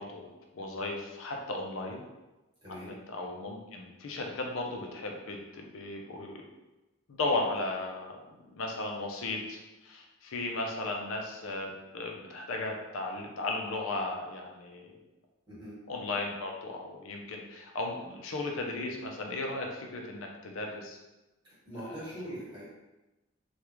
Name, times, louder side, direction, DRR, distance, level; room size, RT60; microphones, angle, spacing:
voice 1, 0.0-2.0 2.8-6.4 7.1-8.2 8.5-15.0 15.9-21.0 21.9-22.0, left 2 dB, 75° left, 1 dB, 0.5 m, -36 dB
voice 2, 2.6-3.0 15.5-15.8 21.4-22.6, equal, 20° right, -8 dB, 1.2 m, -42 dB
3.4 x 2.3 x 3.0 m, 1.0 s
head